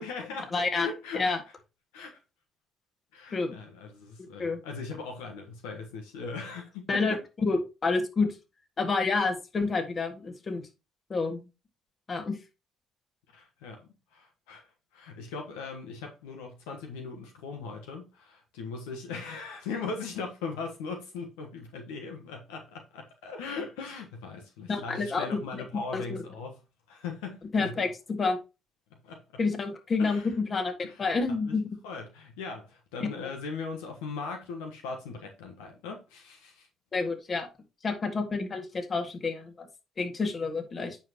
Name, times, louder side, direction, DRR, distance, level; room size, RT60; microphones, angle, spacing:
voice 1, 0.0-1.5 1.9-2.2 3.1-7.2 13.3-26.6 26.9-27.8 28.9-29.2 30.0-30.3 30.8-31.1 31.4-31.5 31.8-36.7, left 4 dB, 85° left, 1.2 m, -39 dB
voice 2, 0.5-0.9 1.1-1.4 3.3-3.6 4.4-4.6 6.9-7.2 7.4-8.3 8.8-10.6 11.1-11.5 12.1-12.4 24.7-25.4 25.9-26.2 27.5-28.4 29.4-30.2 30.5-30.7 31.0-31.6 33.0-33.1 36.9-37.5 37.8-39.7 40.0-41.0, left 4 dB, 45° left, 2.0 m, -28 dB
8.9 x 5.7 x 3.0 m
hypercardioid pair, 55°, 0 cm